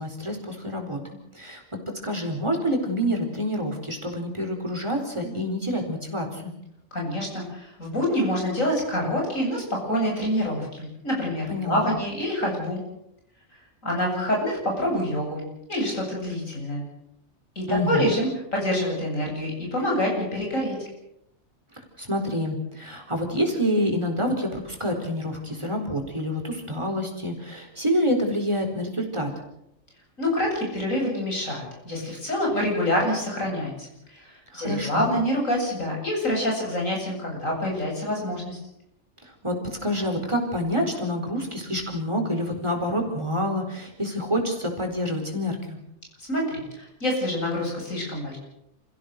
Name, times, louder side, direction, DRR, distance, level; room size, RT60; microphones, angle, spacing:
voice 1, 0.0-1.6 2.0-6.5 11.5-11.9 17.7-18.1 22.0-29.3 34.5-35.1 39.2-45.8, equal, 20° right, 2 dB, 4.5 m, -27 dB
voice 2, 6.9-12.8 13.8-15.4 15.7-16.9 17.5-20.7 30.2-38.6 46.3-48.4, left 1 dB, 75° left, -1 dB, 8.5 m, -26 dB
28.5 x 16.0 x 6.7 m, 0.79 s
omnidirectional pair, 1.4 m